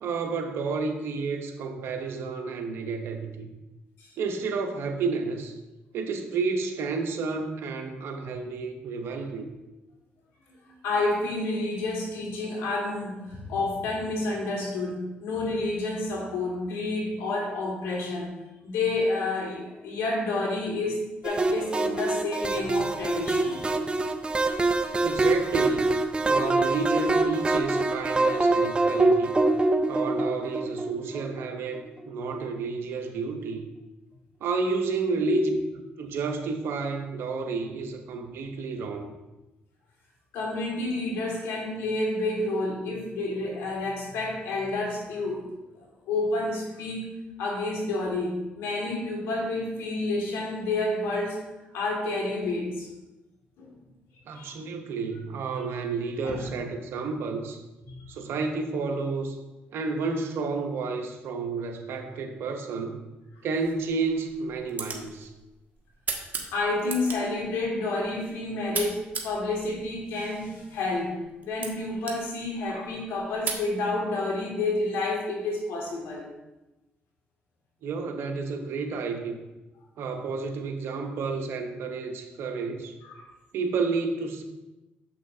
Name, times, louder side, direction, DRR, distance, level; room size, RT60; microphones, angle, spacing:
voice 1, 0.0-3.5 4.2-5.5 5.9-9.5 25.0-26.0 26.2-29.3 29.9-33.6 34.4-39.1 54.3-57.6 58.1-59.4 59.7-63.0 63.4-65.3 77.8-79.4 80.0-82.9 83.5-84.4, right 4 dB, 70° right, 5 dB, 0.9 m, -31 dB
voice 2, 10.6-18.3 18.6-23.8 35.2-35.5 40.3-45.5 45.8-47.1 47.4-51.4 51.7-52.9 53.6-53.8 54.3-54.6 56.2-56.5 57.8-58.1 66.5-71.2 71.4-76.3 83.1-83.3, left 2 dB, 85° left, -2 dB, 1.9 m, -29 dB
sound 1, 21.2-31.9, right 2 dB, 25° right, 0.5 m, -25 dB
sound 2, 63.6-73.7, right 4 dB, 45° right, 1.2 m, -39 dB
7.2 x 5.8 x 2.7 m, 1.0 s
cardioid pair, 75°, 4 cm